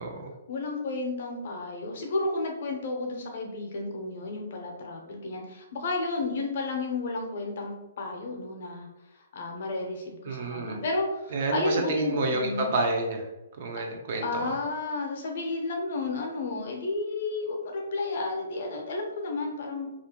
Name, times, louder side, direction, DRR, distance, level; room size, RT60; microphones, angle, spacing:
voice 1, 0.5-8.9 9.2-12.7 13.8-13.9 14.2-19.9, left 3 dB, 50° left, 1 dB, 0.6 m, -32 dB
voice 2, 10.3-10.8 11.3-13.3 13.6-14.5, right 2 dB, 40° right, 2 dB, 0.4 m, -29 dB
2.4 x 2.1 x 2.8 m, 0.97 s
hypercardioid pair, 170°, 0 cm